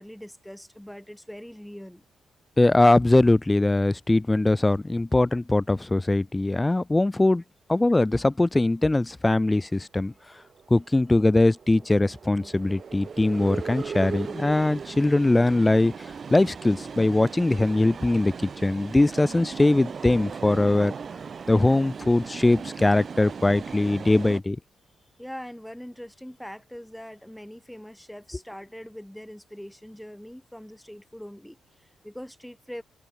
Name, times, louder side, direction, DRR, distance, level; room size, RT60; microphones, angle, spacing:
voice 1, 0.0-2.0 25.2-32.8, equal, 5° left, 3.3 m, -42 dB
voice 2, 2.6-7.4 7.7-10.1 10.7-15.9 16.3-18.3 18.6-20.9 21.5-24.6, left 2 dB, 20° left, 0.4 m, -21 dB
sound 1, 10.3-24.4, right 6 dB, 55° right, 2.8 m, -38 dB
supercardioid pair, 50°, 0 cm